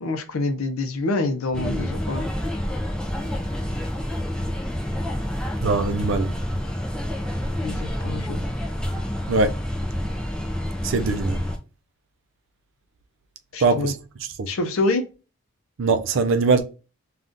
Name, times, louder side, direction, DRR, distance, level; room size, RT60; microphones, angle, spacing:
voice 1, 0.0-2.3 7.6-8.4 13.5-13.9 14.5-15.1, left 2 dB, 80° left, 0.5 m, -26 dB
sound 1, 1.5-11.6, equal, 5° left, 0.3 m, -28 dB
voice 2, 5.6-6.3 9.3-9.5 10.8-11.4 13.6-14.0 14.4-14.5 15.8-16.6, right 3 dB, 65° right, 0.4 m, -21 dB
2.6 x 2.4 x 3.4 m
head